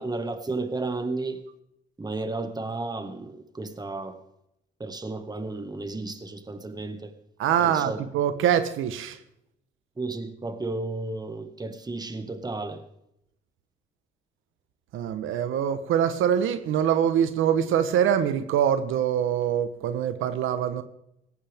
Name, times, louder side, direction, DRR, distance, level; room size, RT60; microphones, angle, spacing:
voice 1, 0.0-1.4 2.0-4.2 4.8-7.1 7.6-8.0 10.0-12.8, right 3 dB, 20° right, 1.9 m, -33 dB
voice 2, 7.4-9.2 14.9-20.8, right 9 dB, 85° right, 1.2 m, -24 dB
17.5 x 15.0 x 3.6 m
cardioid pair, 90°, 20 cm